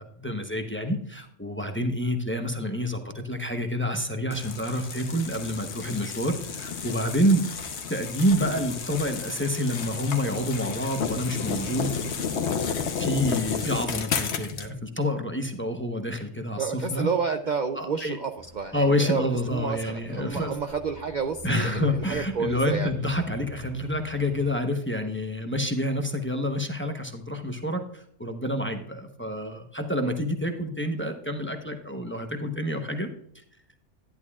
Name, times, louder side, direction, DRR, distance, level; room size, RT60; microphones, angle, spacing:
voice 1, 0.0-7.4 7.9-12.0 12.9-17.1 17.7-18.2 18.7-20.5 21.4-33.1, equal, 10° left, 4 dB, 0.9 m, -28 dB
sound 1, 4.3-14.7, left 6 dB, 65° left, 1.1 m, -32 dB
voice 2, 16.6-22.9 30.0-30.1, right 5 dB, 50° right, 5 dB, 0.6 m, -30 dB
sound 2, 18.4-24.6, right 1 dB, 15° right, 0.9 m, -48 dB
11.5 x 10.5 x 2.4 m, 0.67 s
omnidirectional pair, 1.2 m